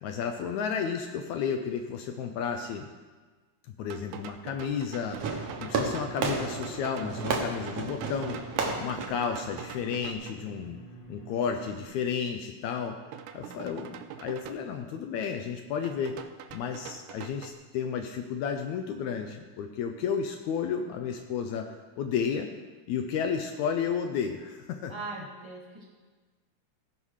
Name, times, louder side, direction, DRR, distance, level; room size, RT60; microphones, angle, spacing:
voice 1, 0.0-2.9 3.8-8.4 8.8-10.8 11.1-13.0 13.3-16.2 16.5-22.5 22.9-24.9, left 7 dB, 80° left, 5 dB, 1.8 m, -32 dB
sound 1, 3.9-10.4 13.1-14.5 15.8-17.5, right 9 dB, 85° right, 2.0 m, -45 dB
Fireworks, 5.1-10.1, right 4 dB, 60° right, 2.0 m, -33 dB
sound 2, 5.5-11.8, right 1 dB, 50° left, 1.5 m, -47 dB
voice 2, 13.4-13.8 24.9-25.8, right 3 dB, 10° right, -5 dB, 1.4 m, -41 dB
15.5 x 5.5 x 4.8 m, 1.4 s
omnidirectional pair, 3.5 m